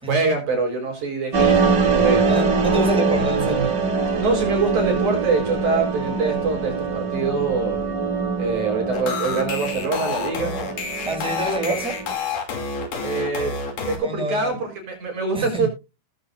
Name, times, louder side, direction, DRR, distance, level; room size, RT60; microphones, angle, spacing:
voice 1, 0.1-2.3 4.2-7.8 8.4-10.5 13.0-13.6 13.9-15.7, right 4 dB, 65° right, 5.8 m, -24 dB
sound 1, 1.3-12.1, right 4 dB, 40° right, 2.1 m, -23 dB
voice 2, 2.3-3.8 11.0-12.0 14.0-14.6 15.3-15.7, right 2 dB, ahead, 6.7 m, -26 dB
sound 2, 8.9-14.0, left 5 dB, 75° left, 4.5 m, -29 dB
18.0 x 8.1 x 2.6 m
omnidirectional pair, 3.8 m